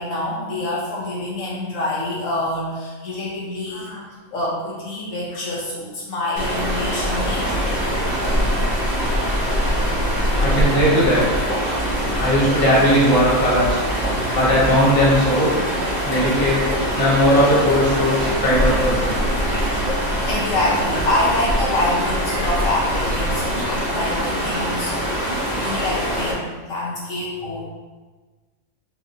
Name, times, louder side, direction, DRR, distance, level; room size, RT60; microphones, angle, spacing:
voice 1, 0.0-3.9 4.3-7.7 20.0-25.0 25.5-27.7, left 1 dB, 70° left, -5 dB, 1.1 m, -26 dB
voice 2, 3.7-4.0 7.1-7.9 10.4-11.2 12.1-13.8 14.3-15.6 16.0-19.2, equal, 15° left, -8 dB, 1.1 m, -19 dB
sound 1, 6.4-26.3, equal, 35° left, 0.9 m, -23 dB
5.7 x 2.4 x 2.7 m, 1.3 s
omnidirectional pair, 1.4 m